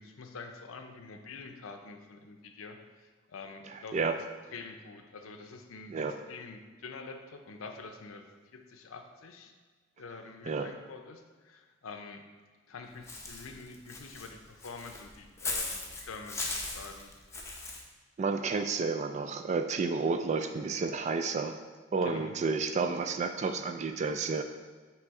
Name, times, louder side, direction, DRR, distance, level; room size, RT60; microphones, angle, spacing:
voice 1, 0.0-2.8 3.3-4.1 4.5-8.3 8.5-9.5 10.0-12.2 12.7-17.1 22.0-22.3, left 4 dB, 80° left, 5 dB, 0.6 m, -46 dB
voice 2, 3.7-4.1 5.9-6.2 10.4-10.7 18.2-21.6 21.9-24.4, right 4 dB, 35° right, 7 dB, 0.3 m, -31 dB
Walk footsteps / Bird, 13.1-17.8, left 3 dB, 15° left, 0.6 m, -38 dB
6.2 x 3.3 x 4.7 m, 1.5 s
head